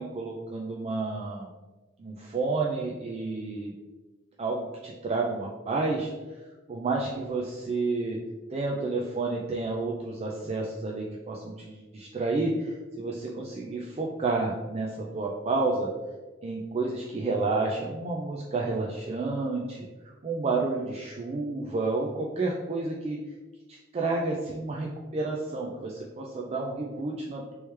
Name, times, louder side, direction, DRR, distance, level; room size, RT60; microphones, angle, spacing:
voice 1, 0.0-1.5 2.0-3.7 4.4-6.1 6.7-8.2 8.5-15.9 16.4-19.9 20.2-23.2 23.7-27.6, right 3 dB, 30° right, -2 dB, 0.3 m, -30 dB
3.1 x 3.0 x 3.2 m, 1.2 s
head